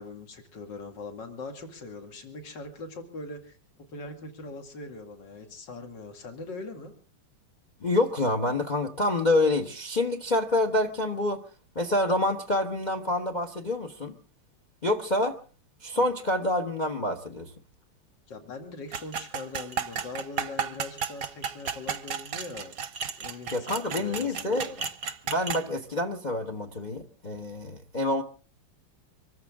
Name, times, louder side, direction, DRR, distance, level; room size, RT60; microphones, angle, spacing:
voice 1, 0.0-6.9 15.9-16.1 18.3-22.7 23.2-24.9, left 3 dB, 55° left, 3.1 m, -41 dB
voice 2, 7.8-11.4 11.7-14.2 14.8-15.4 15.8-17.5 23.5-24.7 25.3-28.2, left 1 dB, 25° left, 1.1 m, -27 dB
sound 1, 18.9-25.6, right 7 dB, 50° right, 1.2 m, -33 dB
25.5 x 14.5 x 3.7 m
omnidirectional pair, 2.4 m